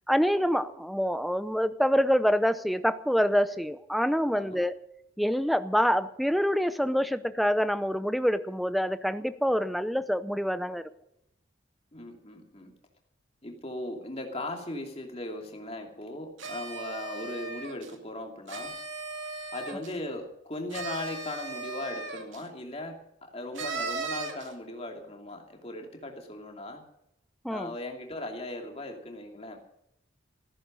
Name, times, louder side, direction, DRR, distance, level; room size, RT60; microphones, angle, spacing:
voice 1, 0.1-4.8 5.2-10.8 27.4-27.7, equal, ahead, 12 dB, 0.6 m, -26 dB
voice 2, 11.9-12.7 13.4-18.8 19.5-26.8 27.5-29.6, left 1 dB, 30° left, 2 dB, 2.7 m, -38 dB
sound 1, 16.4-17.9 18.5-20.0 20.7-22.4 23.5-24.5, right 3 dB, 80° right, 2.4 m, -37 dB
15.0 x 14.5 x 5.3 m, 0.79 s
head